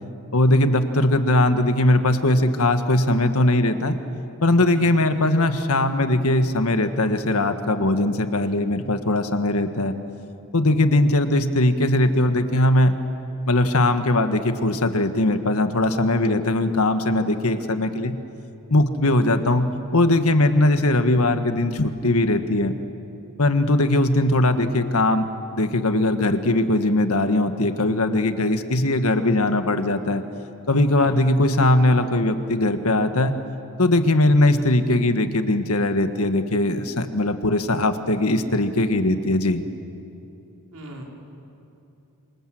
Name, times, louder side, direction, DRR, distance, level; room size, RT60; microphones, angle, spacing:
voice 1, 0.3-4.0 4.4-9.9 10.5-12.9 13.5-18.1 18.7-19.7 19.9-22.7 23.4-25.3 25.5-30.2 30.7-33.3 33.8-39.6, left 1 dB, 75° left, 8 dB, 1.6 m, -20 dB
voice 2, 40.7-41.0, right 2 dB, 80° right, -1 dB, 5.0 m, -37 dB
27.0 x 25.5 x 7.8 m, 2.9 s
head